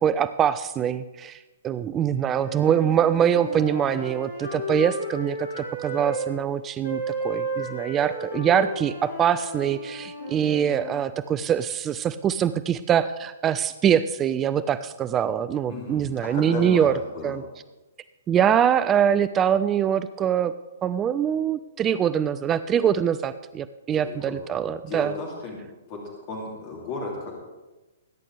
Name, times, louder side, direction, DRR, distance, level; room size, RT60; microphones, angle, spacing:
voice 1, 0.0-1.4 1.6-17.0 17.2-17.4 18.3-20.5 20.8-25.1, right 9 dB, 20° right, 14 dB, 0.4 m, -23 dB
sound 1, 2.2-6.3 6.8-11.0, right 1 dB, 60° left, 5.1 m, -33 dB
voice 2, 15.7-16.9 17.1-17.4 24.0-24.3 24.9-25.6 25.9-26.0 26.3-27.3, left 2 dB, 35° left, -2 dB, 2.9 m, -34 dB
21.0 x 10.0 x 3.4 m, 1.1 s
figure-of-eight pair, 120°, 0 cm